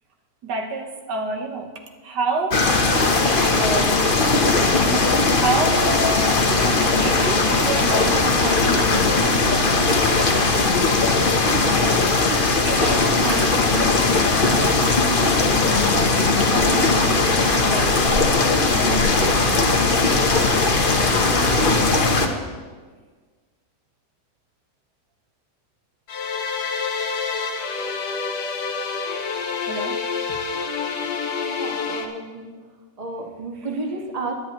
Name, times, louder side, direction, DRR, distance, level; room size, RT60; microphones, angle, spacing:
voice 1, 0.4-1.7 2.0-4.1 4.8-10.5 10.7-11.2 11.6-19.9 29.6-30.4 30.6-30.8 33.5-34.1, right 3 dB, 90° right, 3 dB, 1.9 m, -31 dB
sound 1, 2.5-22.3, left 3 dB, 35° left, 1.0 m, -19 dB
sound 2, 26.1-32.1, left 5 dB, 80° left, 1.7 m, -27 dB
voice 2, 31.6-32.5 33.0-34.3, right 3 dB, 25° right, 1 dB, 1.5 m, -31 dB
21.5 x 9.9 x 3.1 m, 1.5 s
omnidirectional pair, 1.8 m